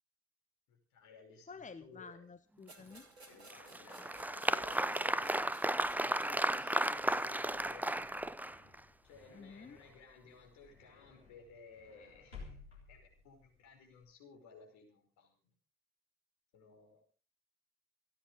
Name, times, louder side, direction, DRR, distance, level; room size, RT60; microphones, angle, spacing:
voice 1, 0.7-2.2 3.3-5.6 6.0-8.1 9.0-15.5 16.5-17.0, left 4 dB, 65° left, 2 dB, 5.5 m, -58 dB
voice 2, 1.5-3.1 9.3-9.8, left 5 dB, 25° left, 11 dB, 1.2 m, -51 dB
sound 1, 2.7-8.0, right 3 dB, 85° right, 1.6 m, -59 dB
Applause, 3.5-8.8, right 1 dB, 5° right, 0.8 m, -34 dB
sound 2, 7.9-14.0, left 4 dB, 90° left, 4.1 m, -57 dB
28.5 x 10.0 x 3.8 m, 0.36 s
figure-of-eight pair, 40°, 31 cm